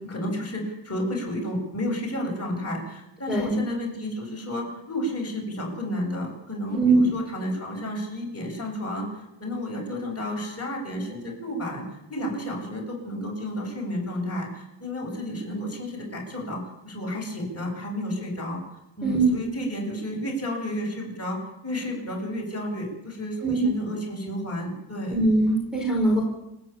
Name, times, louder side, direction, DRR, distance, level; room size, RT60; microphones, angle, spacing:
voice 1, 0.0-11.8 12.1-18.6 19.0-25.2, left 1 dB, 30° left, -2 dB, 7.7 m, -31 dB
voice 2, 3.3-3.6 6.7-7.1 19.0-19.4 23.4-23.7 25.1-26.2, right 3 dB, ahead, -5 dB, 5.0 m, -21 dB
29.0 x 10.0 x 9.0 m, 0.89 s
wide cardioid pair, 145°, 47 cm